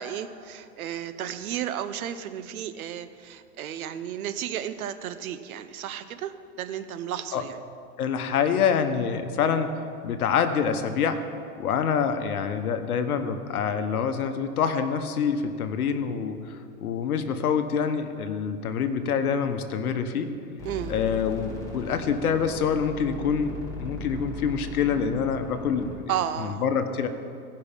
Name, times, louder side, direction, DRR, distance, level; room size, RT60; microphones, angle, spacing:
voice 1, 0.0-7.6 20.6-21.0 26.1-26.6, right 10 dB, 70° right, 11 dB, 0.8 m, -33 dB
voice 2, 8.0-9.7 10.0-11.2 11.6-20.3 20.9-25.9 26.4-27.1, left 7 dB, 75° left, 8 dB, 1.1 m, -26 dB
sound 1, 20.6-26.0, left 1 dB, 5° left, 1.5 m, -38 dB
16.5 x 5.6 x 5.2 m, 2.4 s
hypercardioid pair, 145°, 45 cm